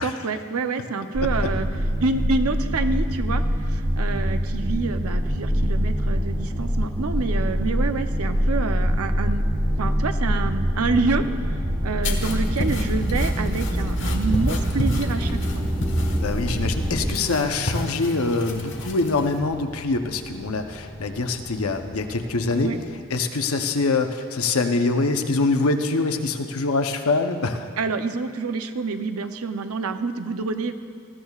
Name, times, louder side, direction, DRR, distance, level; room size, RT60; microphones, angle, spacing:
voice 1, 0.0-1.7 2.0-9.5 9.8-11.3 11.8-15.6 22.6-22.8 27.8-30.7, right 4 dB, 80° right, 8 dB, 0.6 m, -27 dB
sound 1, 1.1-17.1, equal, 30° right, 0.9 m, -24 dB
sound 2, 5.2-23.3, equal, ahead, 1.4 m, -41 dB
sound 3, 12.0-19.4, left 1 dB, 60° left, 1.3 m, -32 dB
voice 2, 16.2-22.7 23.1-27.7, left 3 dB, 75° left, 6 dB, 0.8 m, -24 dB
20.0 x 14.0 x 2.4 m, 2.2 s
head